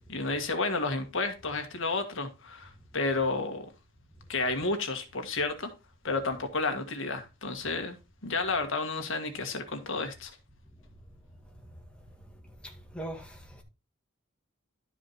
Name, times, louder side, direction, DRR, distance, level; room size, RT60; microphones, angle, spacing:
voice 1, 0.1-3.7 4.3-5.7 6.0-8.0 8.2-10.3, left 3 dB, 65° left, 1.7 m, -31 dB
voice 2, 12.6-13.6, right 1 dB, 5° left, 1.9 m, -41 dB
12.0 x 5.0 x 4.2 m
head